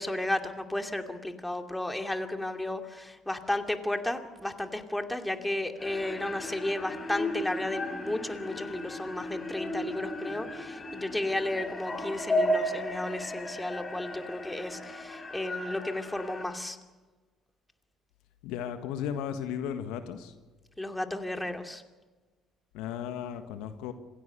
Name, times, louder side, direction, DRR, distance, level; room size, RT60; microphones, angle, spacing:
voice 1, 0.0-16.8 20.8-21.8, left 1 dB, 10° left, 5 dB, 2.6 m, -33 dB
sound 1, 5.8-16.4, left 1 dB, 30° left, 5.7 m, -35 dB
voice 2, 18.4-20.3 22.7-23.9, left 8 dB, 75° left, 8 dB, 1.6 m, -35 dB
27.0 x 16.5 x 6.8 m, 1.3 s
hypercardioid pair, 55°, 0 cm